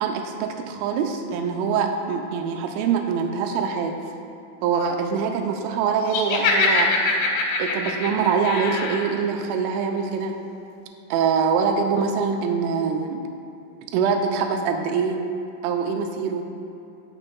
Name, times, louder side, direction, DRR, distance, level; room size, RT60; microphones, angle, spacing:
voice 1, 0.0-4.0 4.6-6.9 7.6-10.4 11.1-13.2 13.9-15.2 15.6-16.5, right 6 dB, 85° right, 4 dB, 3.2 m, -24 dB
Laughter, 6.1-9.1, left 3 dB, 85° left, 3.6 m, -23 dB
18.0 x 6.3 x 2.3 m, 2.8 s
omnidirectional pair, 5.7 m